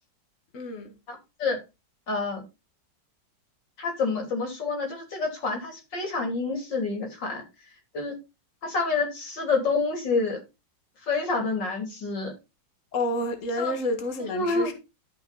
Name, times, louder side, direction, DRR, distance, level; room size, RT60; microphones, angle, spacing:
voice 1, 0.5-0.9 12.9-14.7, left 1 dB, 45° left, 2.0 m, -29 dB
voice 2, 1.1-1.6 2.1-2.4 3.8-7.4 7.9-8.1 8.6-10.4 11.0-12.3 13.6-13.8 14.3-14.7, left 4 dB, 70° left, 4.0 m, -28 dB
13.0 x 5.4 x 4.1 m
omnidirectional pair, 2.0 m